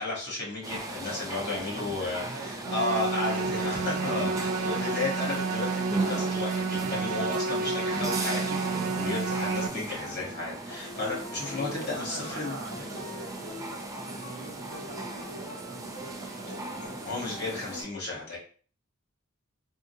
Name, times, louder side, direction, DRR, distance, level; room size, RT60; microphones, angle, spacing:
voice 1, 0.0-12.6 17.0-18.4, left 3 dB, 50° left, -4 dB, 1.5 m, -33 dB
sound 1, 0.6-17.8, right 2 dB, 15° right, 0.4 m, -37 dB
voice 2, 1.1-3.5 8.8-9.1 11.6-17.3, right 3 dB, 60° right, 1 dB, 0.8 m, -44 dB
sound 2, 2.5-17.8, left 1 dB, 70° left, 1.4 m, -45 dB
sound 3, 2.7-9.7, right 4 dB, 85° right, 0.4 m, -30 dB
3.6 x 2.3 x 2.7 m, 0.42 s
head